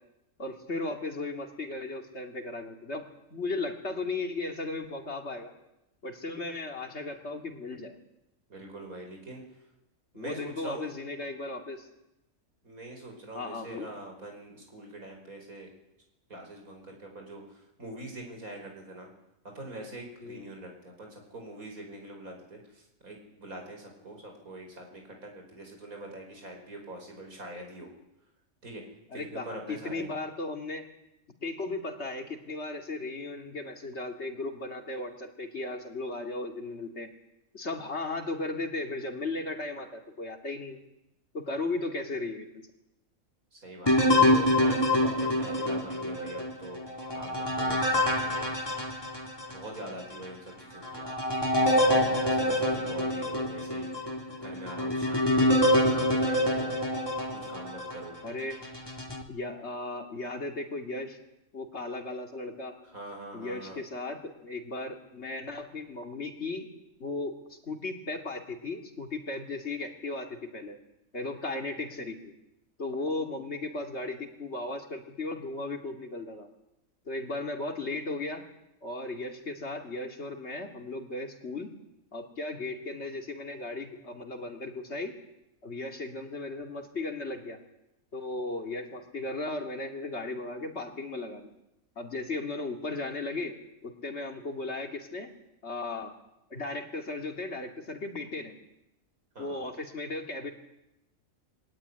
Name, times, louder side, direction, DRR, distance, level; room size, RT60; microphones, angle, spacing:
voice 1, 0.4-3.0 3.3-5.5 6.0-8.0 10.1-11.9 13.3-13.9 20.2-20.5 29.1-30.8 31.4-37.1 37.5-40.8 41.3-42.5 58.2-58.6 59.3-61.2 61.5-62.7 63.3-66.7 67.0-67.3 67.7-70.8 71.1-72.3 72.8-76.5 77.1-78.4 78.8-81.7 82.1-85.1 85.6-87.6 88.1-91.5 92.0-93.5 93.8-95.3 95.6-96.1 96.5-98.5 99.4-100.5, left 2 dB, 50° left, 3 dB, 2.8 m, -36 dB
voice 2, 8.5-9.4 10.1-10.9 12.6-15.7 16.3-19.1 19.5-27.9 28.6-28.8 29.1-30.1 43.5-46.8 47.1-48.6 49.5-51.2 51.6-56.8 57.5-58.2 62.8-63.8 99.4-99.6, right 1 dB, 85° right, 2 dB, 5.6 m, -44 dB
sound 1, 43.9-49.6 50.1-50.2 50.8-58.0 58.6-59.2, left 1 dB, 15° left, 2.5 m, -26 dB
23.0 x 17.5 x 9.9 m, 0.90 s
omnidirectional pair, 1.4 m